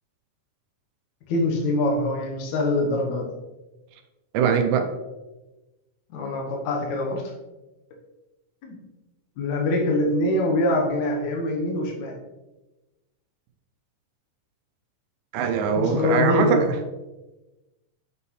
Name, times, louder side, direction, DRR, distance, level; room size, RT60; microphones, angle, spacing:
voice 1, 1.3-3.2 6.1-7.2 8.6-8.8 9.4-12.1 15.8-16.6, left 2 dB, 65° left, 0 dB, 2.2 m, -24 dB
voice 2, 4.3-4.9 15.3-16.7, right 6 dB, 80° right, 6 dB, 2.3 m, -22 dB
7.2 x 5.7 x 3.2 m, 1.1 s
omnidirectional pair, 4.0 m